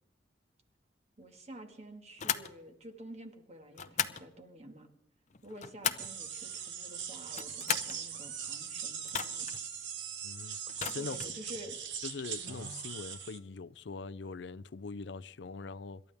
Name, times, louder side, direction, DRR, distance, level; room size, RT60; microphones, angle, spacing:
voice 1, 1.2-4.9 5.4-9.5 11.0-11.8, right 1 dB, 40° right, 2.0 m, -49 dB
sound 1, 2.2-2.5 3.7-4.2 5.3-6.2 7.2-8.0 9.1-9.6 10.7-11.4, left 8 dB, 40° left, 0.7 m, -36 dB
sound 2, 6.0-13.4, right 7 dB, 80° right, 1.4 m, -40 dB
voice 2, 10.2-11.2 12.0-16.0, left 4 dB, 70° left, 0.5 m, -42 dB
26.5 x 12.5 x 3.5 m
head